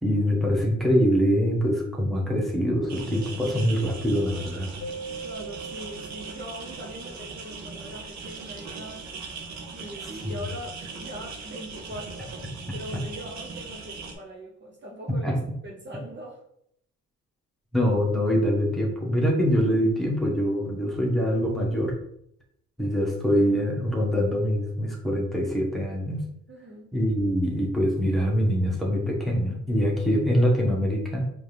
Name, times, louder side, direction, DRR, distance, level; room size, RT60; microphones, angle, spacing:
voice 1, 0.0-4.7 10.2-10.4 12.9-13.0 15.2-15.4 17.7-22.0 22.8-26.3 26.9-31.3, equal, ahead, -3 dB, 1.4 m, -24 dB
sound 1, 2.9-14.1, right 4 dB, 65° right, 1.0 m, -40 dB
Keyboard (musical), 4.8-7.5, right 3 dB, 55° left, 0.5 m, -41 dB
voice 2, 5.2-9.1 9.7-12.4 12.7-16.4 26.5-26.9, equal, 40° right, -2 dB, 0.9 m, -41 dB
4.8 x 2.9 x 3.4 m, 0.73 s
cardioid pair, 90°, 30 cm